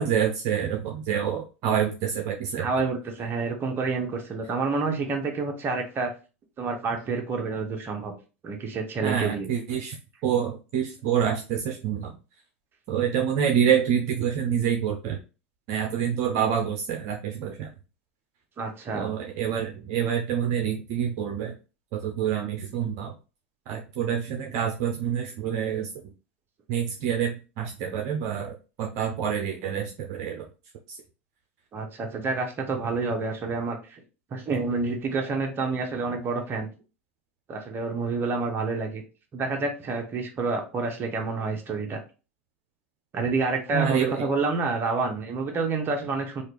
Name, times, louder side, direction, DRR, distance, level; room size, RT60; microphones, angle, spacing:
voice 1, 0.0-2.7 9.0-10.0 10.2-12.1 12.9-15.2 15.7-17.7 18.9-21.5 22.0-23.1 23.7-25.9 26.7-30.4 30.9-31.0 43.7-44.3, right 8 dB, 55° right, 0 dB, 0.7 m, -27 dB
voice 2, 2.6-6.1 6.6-8.1 8.4-9.5 18.6-19.1 31.7-34.0 34.3-36.7 37.5-39.0 39.3-42.0 43.1-46.4, right 4 dB, 30° right, 3 dB, 1.0 m, -28 dB
3.2 x 2.5 x 2.9 m, 0.33 s
hypercardioid pair, 90°, 7 cm